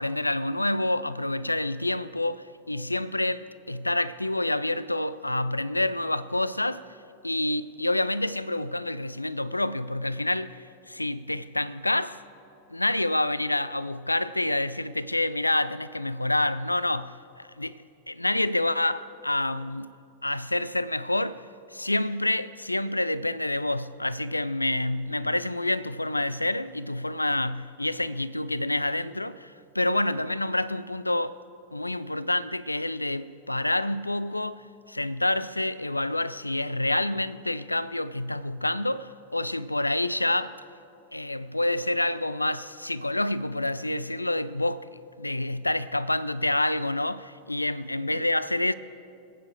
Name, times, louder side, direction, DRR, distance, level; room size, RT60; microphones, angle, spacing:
voice 1, 0.0-6.9 7.2-12.2 12.7-19.9 20.2-21.5 21.7-31.4 31.7-34.6 34.9-40.6 41.1-48.7, left 1 dB, 85° left, 0.4 m, -28 dB
25.0 x 9.0 x 5.0 m
figure-of-eight pair, 90°, 0 cm